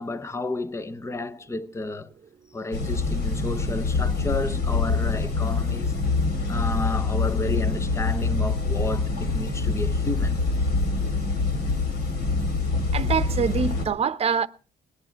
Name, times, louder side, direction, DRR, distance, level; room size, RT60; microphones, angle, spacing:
voice 1, 0.0-2.1 2.5-5.9 6.5-10.4, left 2 dB, 15° left, 0.8 m, -31 dB
sound 1, 2.7-13.9, left 3 dB, 70° left, 3.7 m, -25 dB
voice 2, 12.9-14.5, right 6 dB, 35° right, 0.9 m, -25 dB
20.0 x 10.5 x 4.5 m
cardioid pair, 110°, 17 cm